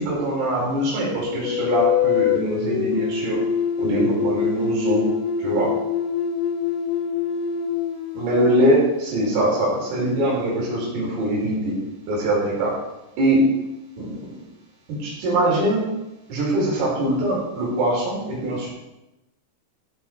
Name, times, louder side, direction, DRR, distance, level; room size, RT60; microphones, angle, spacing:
voice 1, 0.0-3.4 3.8-5.1 5.4-5.7 8.2-11.7 12.1-12.7 13.2-13.4 14.0-14.4 15.0-15.8 16.3-18.7, right 1 dB, 85° right, -4 dB, 7.2 m, -22 dB
sound 1, 1.4-8.8, left 7 dB, 85° left, 3.5 m, -24 dB
15.5 x 8.6 x 4.8 m, 0.95 s
omnidirectional pair, 5.9 m